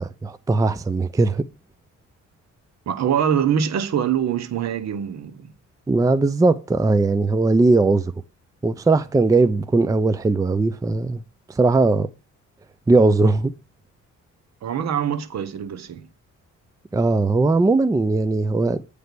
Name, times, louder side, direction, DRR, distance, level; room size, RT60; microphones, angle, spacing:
voice 1, 0.0-1.4 5.9-8.1 8.6-11.2 11.5-12.1 12.9-13.5 16.9-18.8, right 3 dB, 10° right, 0.5 m, -19 dB
voice 2, 2.9-5.5 14.6-16.1, right 8 dB, 60° right, 1.0 m, -24 dB
9.1 x 3.3 x 6.7 m
cardioid pair, 90°, 30 cm